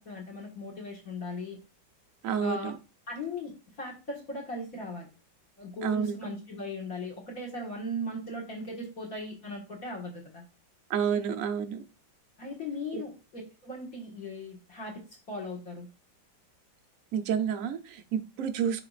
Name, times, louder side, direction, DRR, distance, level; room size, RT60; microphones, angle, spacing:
voice 1, 0.0-1.6 2.4-2.7 3.1-5.1 5.6-10.4 12.4-15.0 15.3-15.9, left 1 dB, 45° left, 1 dB, 1.9 m, -38 dB
voice 2, 2.2-2.7 5.8-6.2 10.9-11.8 12.9-13.0 17.1-18.9, right 7 dB, 60° right, 8 dB, 1.0 m, -29 dB
10.5 x 3.9 x 2.4 m, 0.30 s
omnidirectional pair, 2.1 m